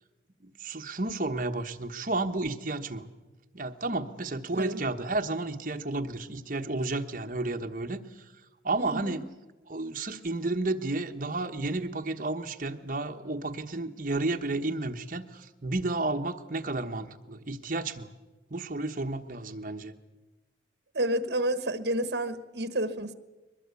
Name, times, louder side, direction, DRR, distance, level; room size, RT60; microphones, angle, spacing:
voice 1, 0.4-3.1 3.5-8.0 8.6-9.2 9.7-18.1 18.5-19.9, right 2 dB, 45° right, 5 dB, 1.2 m, -32 dB
voice 2, 8.8-9.2 20.9-23.1, right 1 dB, 65° right, 12 dB, 1.4 m, -30 dB
22.0 x 21.0 x 8.3 m, 1.2 s
head